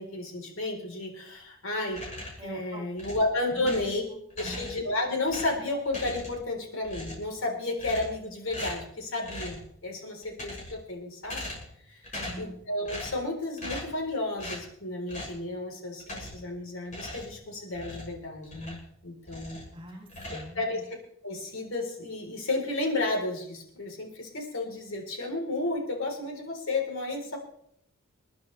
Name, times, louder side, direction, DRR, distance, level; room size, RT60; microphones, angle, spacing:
voice 1, 0.0-2.0 2.4-4.0 4.4-11.5 11.9-19.6 20.5-20.8 21.2-27.4, left 2 dB, 70° left, 1 dB, 4.0 m, -32 dB
sound 1, 1.9-2.5 3.0-4.0 4.3-4.9 5.3-6.5 6.8-7.4 7.8-8.2 8.5-8.9 9.2-9.7 10.2-10.9 11.2-11.8 12.0-12.5 12.9-13.3 13.6-14.0 14.4-14.7 15.1-15.4 16.0-16.5 16.9-18.9 19.2-19.7 20.1-20.9, left 1 dB, 35° left, 6.7 m, -40 dB
voice 2, 2.4-2.8 3.5-3.9 4.4-4.7 12.1-12.5 19.7-20.8, right 1 dB, 25° right, 1 dB, 2.6 m, -42 dB
28.0 x 11.0 x 3.4 m, 0.73 s
head